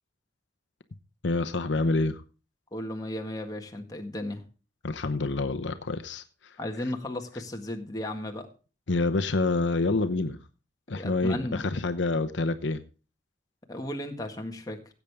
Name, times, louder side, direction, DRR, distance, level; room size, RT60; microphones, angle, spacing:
voice 1, 1.2-2.2 4.8-6.2 8.9-10.4 10.9-12.8, left 3 dB, 80° left, 0.9 m, -27 dB
voice 2, 2.7-4.4 6.6-8.5 10.9-11.6 13.7-14.8, left 1 dB, 20° left, 1.7 m, -35 dB
16.0 x 8.3 x 3.5 m
head